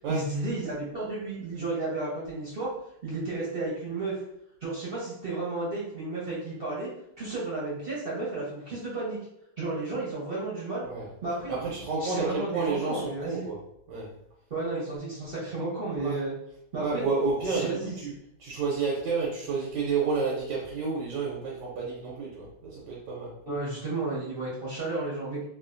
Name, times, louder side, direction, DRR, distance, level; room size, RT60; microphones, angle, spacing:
voice 1, 0.1-2.7 3.0-4.2 4.6-6.9 7.2-9.2 9.6-10.9 11.2-11.5 12.0-13.5 14.5-16.3 16.7-17.9 23.5-25.4, right 2 dB, 45° right, -7 dB, 0.8 m, -33 dB
voice 2, 11.5-13.6 13.9-14.1 16.0-16.2 16.8-17.8 18.0-18.1 18.4-23.3, right 4 dB, 90° right, -4 dB, 1.4 m, -30 dB
3.1 x 2.4 x 2.5 m, 0.78 s
omnidirectional pair, 1.9 m